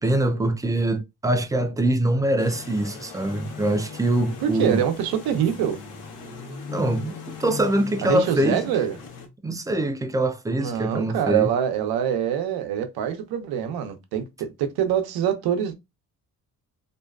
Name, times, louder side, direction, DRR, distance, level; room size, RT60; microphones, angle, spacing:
voice 1, 0.0-4.8 6.7-8.7 9.4-11.5, right 1 dB, 10° right, 0.3 m, -24 dB
sound 1, 2.4-9.3, left 4 dB, 85° left, 0.9 m, -39 dB
voice 2, 4.4-5.8 8.0-9.0 10.6-15.8, right 9 dB, 85° right, 0.6 m, -24 dB
2.6 x 2.3 x 2.3 m
cardioid pair, 105°, 36 cm